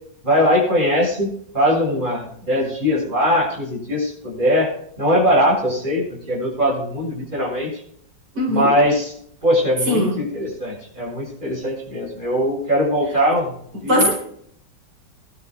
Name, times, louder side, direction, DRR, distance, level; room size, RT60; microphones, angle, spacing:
voice 1, 0.2-1.3 1.5-4.7 5.0-7.7 8.5-9.1 9.4-13.5 13.8-14.1, equal, 25° right, -4 dB, 7.6 m, -20 dB
voice 2, 8.3-8.7 9.9-10.1 13.9-14.1, equal, 80° right, -2 dB, 4.6 m, -18 dB
23.5 x 12.0 x 2.5 m, 0.65 s
omnidirectional pair, 1.9 m